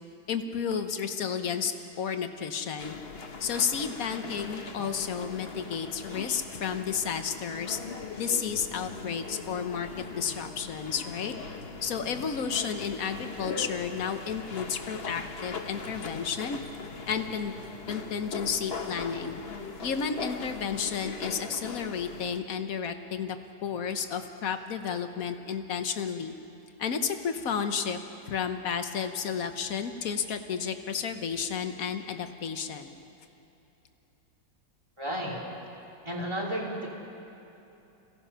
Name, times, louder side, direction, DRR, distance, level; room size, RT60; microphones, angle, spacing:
voice 1, 0.3-3.0 3.4-7.8 8.2-11.3 11.8-16.6 17.1-17.5 17.9-19.4 19.8-23.4 23.6-26.3 26.8-28.0 28.3-33.0, left 7 dB, 55° left, 8 dB, 1.3 m, -32 dB
sound 1, 2.8-22.4, left 4 dB, 40° left, 1.2 m, -40 dB
voice 2, 35.0-35.4 36.0-36.9, right 1 dB, 15° right, -3 dB, 3.2 m, -32 dB
26.5 x 17.0 x 5.7 m, 2.9 s
omnidirectional pair, 1.9 m